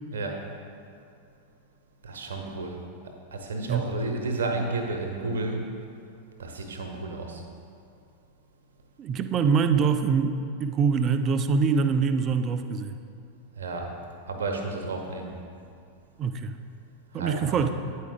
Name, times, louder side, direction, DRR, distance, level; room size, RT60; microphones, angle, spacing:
voice 1, 0.1-0.5 2.0-2.8 3.3-5.7 6.4-7.4 13.6-13.9 14.3-15.3 17.1-17.7, right 3 dB, 65° right, 3 dB, 0.8 m, -32 dB
voice 2, 9.0-10.3 10.6-12.9 16.2-16.6 17.1-17.7, right 5 dB, 30° right, 9 dB, 0.4 m, -24 dB
9.0 x 4.7 x 3.5 m, 2.4 s
figure-of-eight pair, 90°, 0 cm